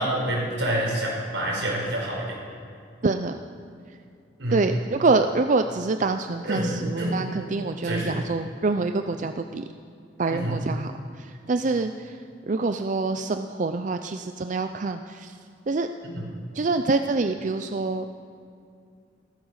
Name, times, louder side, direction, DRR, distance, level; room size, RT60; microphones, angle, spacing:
voice 1, 0.0-2.4 4.4-4.6 6.4-6.7 7.0-7.2 7.8-8.2 10.3-10.6 16.0-16.2, right 1 dB, 85° right, -2 dB, 5.3 m, -27 dB
voice 2, 3.0-3.4 4.5-9.6 10.2-12.2 12.5-15.3 15.7-15.9 16.5-18.0, right 3 dB, 45° right, 8 dB, 0.5 m, -26 dB
15.5 x 14.5 x 6.5 m, 2.5 s
head